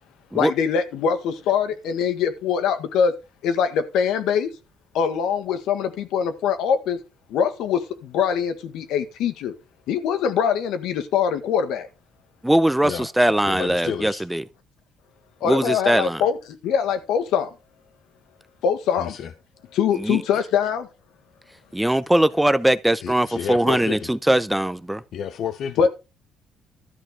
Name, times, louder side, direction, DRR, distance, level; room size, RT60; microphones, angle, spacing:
voice 1, 0.3-3.1 3.4-4.5 4.9-7.0 7.3-9.5 9.9-11.9 15.4-16.4 16.6-17.5 18.6-19.2 19.7-20.9 25.8-25.9, left 7 dB, 80° left, 1.7 m, -23 dB
voice 2, 12.4-14.4 15.4-16.2 20.0-20.2 21.7-25.0, right 1 dB, 5° right, 0.6 m, -20 dB
voice 3, 13.4-14.2 19.0-19.3 23.0-24.1 25.1-25.9, left 8 dB, 60° left, 0.9 m, -31 dB
13.0 x 6.2 x 4.8 m
cardioid pair, 110°, 0 cm